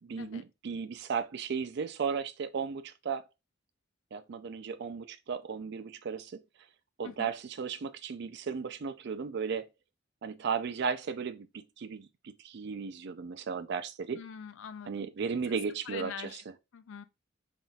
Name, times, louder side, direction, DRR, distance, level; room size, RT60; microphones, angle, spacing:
voice 1, 0.0-3.2 4.1-6.4 7.0-9.7 10.2-14.2 14.8-16.4, right 6 dB, 55° right, 0.4 m, -35 dB
voice 2, 14.1-15.1 15.9-16.4 16.7-17.0, left 7 dB, 65° left, 0.4 m, -43 dB
4.0 x 3.6 x 2.3 m
head